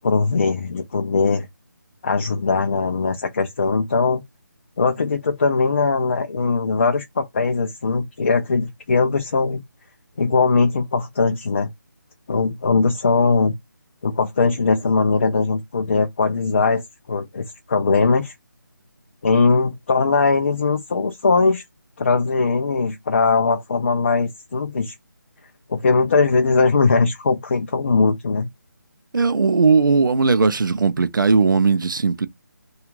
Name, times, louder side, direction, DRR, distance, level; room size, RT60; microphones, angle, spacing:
voice 1, 0.0-1.5 2.0-4.2 4.8-9.6 10.2-11.7 12.3-13.5 14.0-16.8 17.1-18.3 19.2-21.6 22.0-24.9 25.7-28.5, left 4 dB, 40° left, 0.4 m, -20 dB
voice 2, 29.1-32.3, right 4 dB, 75° right, 0.4 m, -18 dB
2.4 x 2.3 x 3.0 m
figure-of-eight pair, 155°, 11 cm